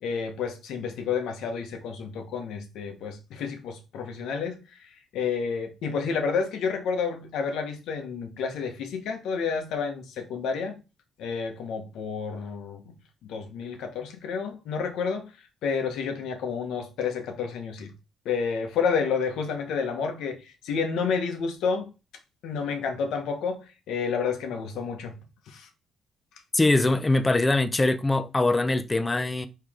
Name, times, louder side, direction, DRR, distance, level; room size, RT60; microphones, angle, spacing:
voice 1, 0.0-10.8 11.2-15.3 15.6-17.9 18.2-21.9 22.4-25.1 25.5-25.7, left 5 dB, 85° left, 1.1 m, -30 dB
voice 2, 26.5-29.5, left 2 dB, 20° left, 0.6 m, -22 dB
4.5 x 3.2 x 3.6 m
cardioid pair, 90°, 0 cm